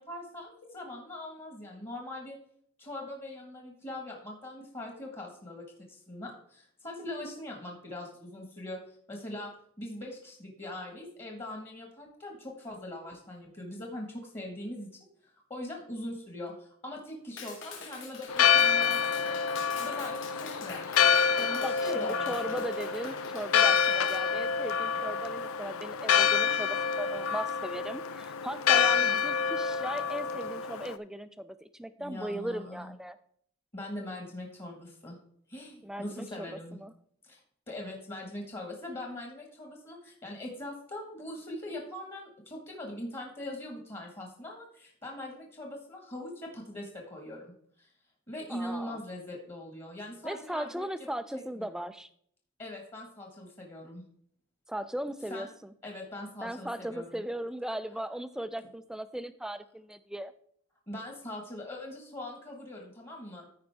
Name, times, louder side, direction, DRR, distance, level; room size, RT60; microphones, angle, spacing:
voice 1, 0.0-2.4 2.8-9.5 9.8-15.1 15.5-19.4 19.8-21.0 21.4-22.6 32.0-32.9 33.7-35.2 35.5-36.8 37.2-37.4 37.7-47.5 47.8-47.9 48.3-50.9 51.3-51.7 52.6-54.0 55.3-55.5 55.8-57.1 60.9-63.5, left 1 dB, 25° left, 0 dB, 1.4 m, -41 dB
Clapping, 17.4-24.2, left 3 dB, 65° left, 2.4 m, -44 dB
Church bell, 18.3-31.0, left 7 dB, 90° left, 0.5 m, -27 dB
voice 2, 21.6-33.2 35.8-36.9 48.5-49.0 50.2-52.1 54.7-55.7 56.4-60.3, right 1 dB, 5° right, 12 dB, 0.3 m, -38 dB
14.0 x 5.2 x 3.4 m, 0.65 s
head